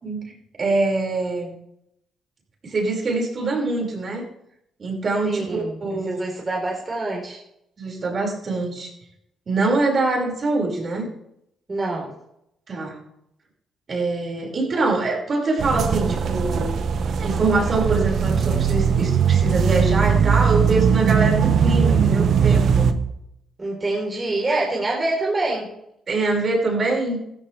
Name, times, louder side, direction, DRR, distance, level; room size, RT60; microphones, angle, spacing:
voice 1, 0.0-1.5 2.6-4.2 4.8-6.2 7.8-8.9 9.5-11.1 12.7-13.0 13.9-16.8 17.2-22.9 26.1-27.2, right 3 dB, 45° right, -1 dB, 5.5 m, -24 dB
voice 2, 5.2-5.8 6.1-7.4 11.7-12.1 23.6-25.7, right 2 dB, 25° right, -3 dB, 4.1 m, -25 dB
sound 1, 15.6-22.9, right 7 dB, 60° right, 1.2 m, -19 dB
15.0 x 15.0 x 3.4 m, 0.77 s
cardioid pair, 90°, 0 cm